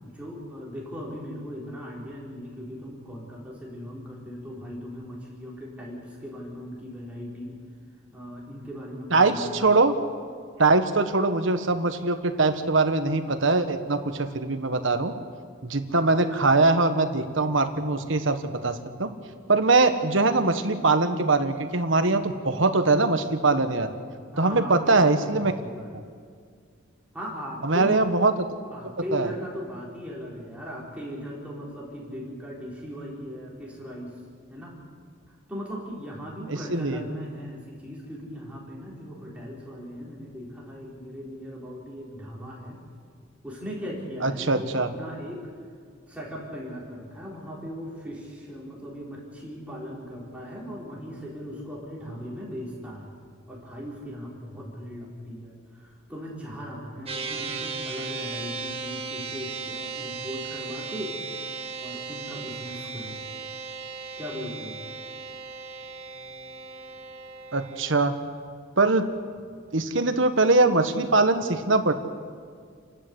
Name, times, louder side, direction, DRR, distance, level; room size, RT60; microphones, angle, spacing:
voice 1, 0.0-7.6 8.1-9.7 24.3-26.0 27.1-28.0 28.7-34.2 34.5-34.8 35.3-42.8 43.4-45.5 46.1-53.1 53.5-61.2 61.8-63.2 64.2-64.8, equal, 5° right, -5 dB, 4.4 m, -38 dB
voice 2, 9.1-9.9 10.6-15.1 15.6-19.1 19.5-23.9 24.4-25.5 27.6-28.3 29.1-29.3 36.5-37.0 44.2-44.9 67.5-68.1 68.8-69.1 69.7-71.9, right 3 dB, 65° right, 8 dB, 1.4 m, -22 dB
sound 1, 57.1-67.9, right 4 dB, 30° right, 1.8 m, -36 dB
29.5 x 12.5 x 8.1 m, 2.1 s
head